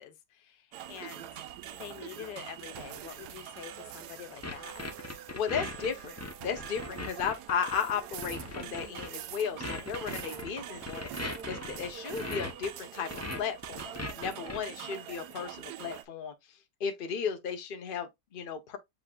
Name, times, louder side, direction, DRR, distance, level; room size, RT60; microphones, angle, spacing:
voice 1, 0.0-1.4 1.7-5.0 10.2-10.4, left 10 dB, 90° left, 1.5 m, -46 dB
sound 1, 0.7-16.0, right 11 dB, 75° right, 1.1 m, -44 dB
Contact mic on guitar string, 4.4-9.1 9.6-12.7 13.1-14.6, left 2 dB, 20° left, 0.4 m, -39 dB
voice 2, 5.3-16.3 16.8-18.8, left 7 dB, 40° left, 0.9 m, -35 dB
7.7 x 2.8 x 2.3 m
omnidirectional pair, 1.8 m